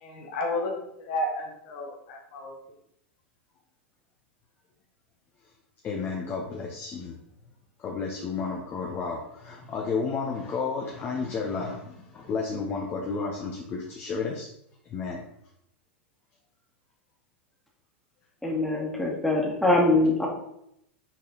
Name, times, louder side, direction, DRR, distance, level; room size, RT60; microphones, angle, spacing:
voice 1, 0.0-2.5, left 1 dB, 65° left, 2 dB, 1.4 m, -32 dB
voice 2, 5.8-7.2 7.8-14.5 14.8-15.2, left 4 dB, 35° left, -1 dB, 1.1 m, -32 dB
voice 3, 18.4-20.3, left 2 dB, 5° left, -2 dB, 1.9 m, -23 dB
6.1 x 4.2 x 4.1 m, 0.77 s
hypercardioid pair, 100°, 6 cm